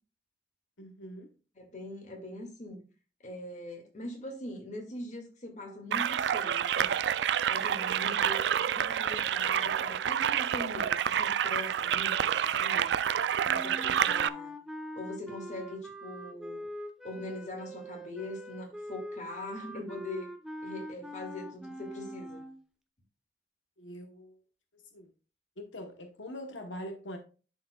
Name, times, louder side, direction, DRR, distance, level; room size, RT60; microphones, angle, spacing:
voice 1, 0.8-1.3 23.8-24.4 24.7-25.1 25.6-27.2, equal, 90° left, 1.0 m, -43 dB
voice 2, 1.6-2.8 3.2-7.0 7.5-12.9 13.4-14.6 15.0-16.7 17.0-20.3 20.6-22.4, left 1 dB, 40° left, 2.0 m, -42 dB
sound 1, 5.9-14.3, right 9 dB, 65° right, 0.3 m, -28 dB
sound 2, 13.5-22.6, equal, 5° right, 0.6 m, -43 dB
11.0 x 4.6 x 2.3 m
head